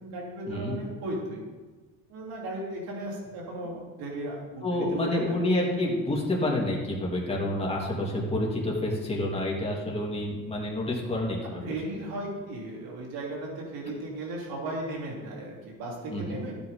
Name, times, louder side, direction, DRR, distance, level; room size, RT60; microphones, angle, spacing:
voice 1, 0.0-1.4 2.1-5.4 11.6-16.5, right 1 dB, 80° right, -3 dB, 3.6 m, -36 dB
voice 2, 4.6-11.7 16.1-16.4, left 1 dB, 15° left, -3 dB, 3.0 m, -28 dB
13.5 x 8.9 x 3.8 m, 1.3 s
cardioid pair, 120°, 35 cm